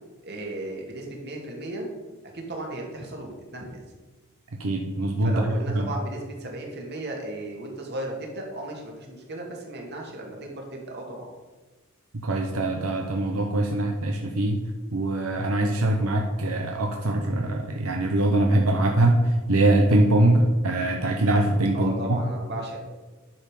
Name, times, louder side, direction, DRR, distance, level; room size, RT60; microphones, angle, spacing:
voice 1, 0.2-1.9 2.5-3.9 5.2-11.3 21.7-22.8, right 1 dB, 50° right, 0 dB, 2.1 m, -35 dB
voice 2, 4.6-5.9 12.1-14.6 14.9-22.2, right 1 dB, 85° right, 2 dB, 0.9 m, -23 dB
10.5 x 5.6 x 5.0 m, 1.3 s
head